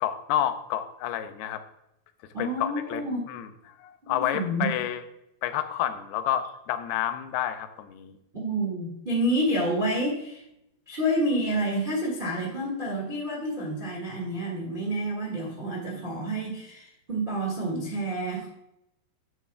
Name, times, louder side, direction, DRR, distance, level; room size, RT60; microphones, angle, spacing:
voice 1, 0.0-1.6 2.4-3.0 3.3-3.5 3.8-5.0 5.4-8.2, left 11 dB, 90° left, 9 dB, 2.7 m, -29 dB
voice 2, 2.3-3.2 4.0-4.7 8.3-10.4 10.9-18.6, right 1 dB, 70° right, -3 dB, 0.4 m, -29 dB
11.0 x 8.3 x 2.2 m, 0.84 s
omnidirectional pair, 4.4 m